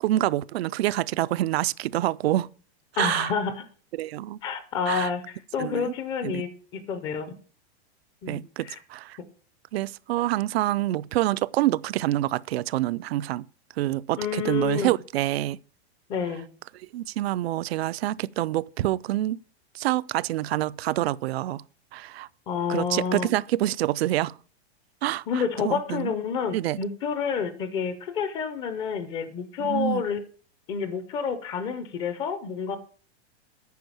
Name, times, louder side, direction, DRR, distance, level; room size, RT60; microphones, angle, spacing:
voice 1, 0.0-2.5 3.0-3.3 3.9-4.4 4.9-5.1 5.6-5.9 6.2-6.4 8.3-9.2 9.7-13.4 13.8-15.6 16.9-19.4 19.7-21.6 21.9-22.3 22.7-24.4 25.0-26.1 26.5-26.8 29.6-30.0, right 15 dB, 70° right, 0.5 m, -27 dB
voice 2, 3.0-3.5 4.4-6.5 6.9-7.4 8.2-8.8 14.2-14.9 16.1-16.5 22.5-23.3 25.3-30.2 30.7-32.8, left 6 dB, 15° left, 0.4 m, -29 dB
9.4 x 5.4 x 7.1 m
supercardioid pair, 170°, 32 cm